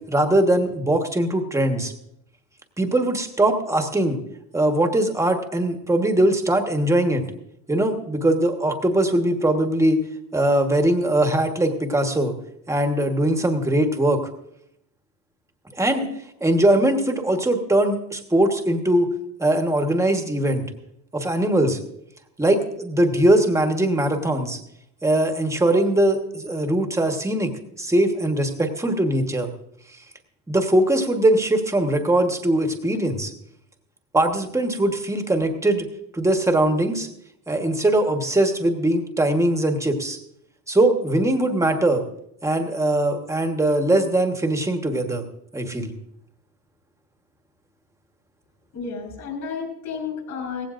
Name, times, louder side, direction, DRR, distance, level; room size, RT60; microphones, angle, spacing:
voice 1, 0.1-1.9 2.8-4.2 4.5-7.2 7.7-10.0 10.3-12.3 12.7-14.2 15.8-16.1 16.4-19.1 19.4-20.6 21.1-21.8 22.4-24.6 25.0-27.5 27.8-29.5 30.5-33.3 34.1-35.9 36.1-37.1 37.5-40.2 40.7-42.0 42.4-45.2 45.5-45.9, right 1 dB, 5° right, 5 dB, 1.3 m, -21 dB
voice 2, 48.7-50.6, left 5 dB, 50° left, 1 dB, 4.7 m, -31 dB
17.0 x 15.5 x 2.5 m, 0.77 s
cardioid pair, 135°, 41 cm